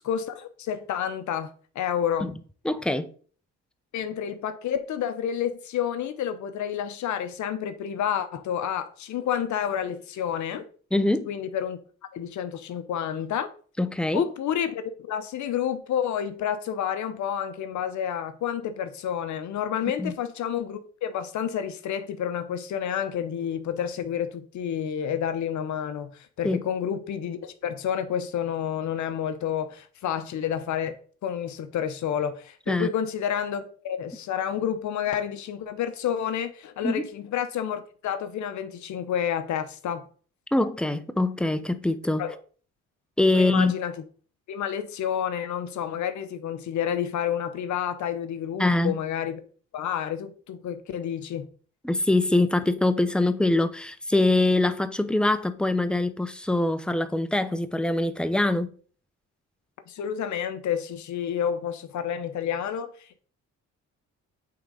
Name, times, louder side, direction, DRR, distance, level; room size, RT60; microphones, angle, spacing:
voice 1, 0.0-2.3 3.9-10.6 11.3-11.8 12.1-13.5 14.1-30.9 31.2-40.0 42.2-42.3 43.3-43.9 44.5-49.4 49.7-51.5 59.9-63.2, left 9 dB, 70° left, 0.8 m, -29 dB
voice 2, 2.6-3.1 10.9-11.3 13.8-14.3 20.0-20.1 26.4-26.6 32.7-32.9 36.8-37.0 40.5-42.2 43.2-43.7 48.6-49.0 51.8-58.7, left 2 dB, 5° left, 0.6 m, -23 dB
8.6 x 3.6 x 3.8 m
cardioid pair, 90°, 30 cm